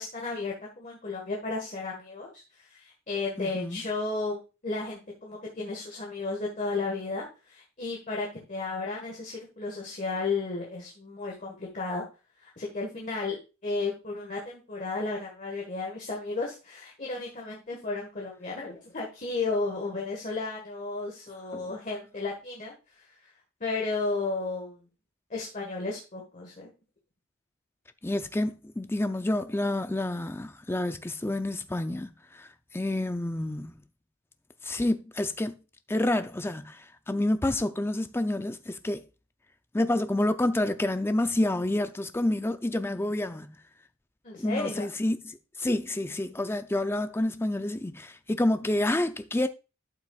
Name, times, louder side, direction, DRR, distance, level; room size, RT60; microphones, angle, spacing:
voice 1, 0.0-12.0 12.4-23.1 23.6-24.8 25.3-26.7 44.2-44.9, left 3 dB, 35° left, 1.5 m, -33 dB
voice 2, 3.4-3.8 21.5-21.7 28.0-33.7 34.6-35.6 35.9-39.0 39.7-43.6 44.4-49.5, left 1 dB, 10° left, 0.4 m, -29 dB
11.5 x 6.0 x 2.4 m
head